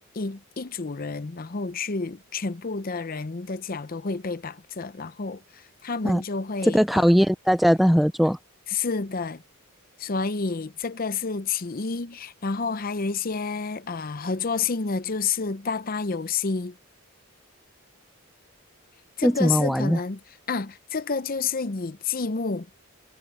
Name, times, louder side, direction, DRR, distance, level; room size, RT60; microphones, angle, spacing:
voice 1, 0.0-5.4 5.8-7.0 8.7-9.4 10.0-16.7 19.2-20.2 20.5-22.7, left 4 dB, 40° left, 0.6 m, -29 dB
voice 2, 6.6-8.4 19.2-20.0, equal, ahead, 0.4 m, -20 dB
head